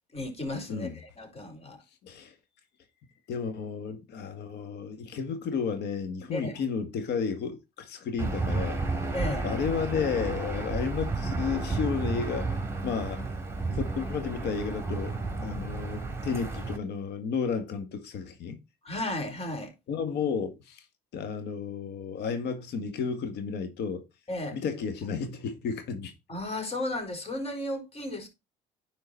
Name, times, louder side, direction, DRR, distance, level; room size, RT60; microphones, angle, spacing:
voice 1, 0.1-1.8 6.3-6.5 9.1-9.5 18.8-19.7 24.3-24.6 26.3-28.3, left 1 dB, 35° left, 4.2 m, -34 dB
voice 2, 2.0-2.3 3.3-8.8 9.4-12.5 12.8-13.2 13.7-18.6 19.9-20.8 21.1-24.0 24.5-26.1, left 6 dB, 70° left, 2.0 m, -32 dB
Aircraft / Engine, 8.2-16.8, right 3 dB, 15° right, 2.8 m, -32 dB
10.5 x 4.7 x 4.1 m
supercardioid pair, 70°, 18 cm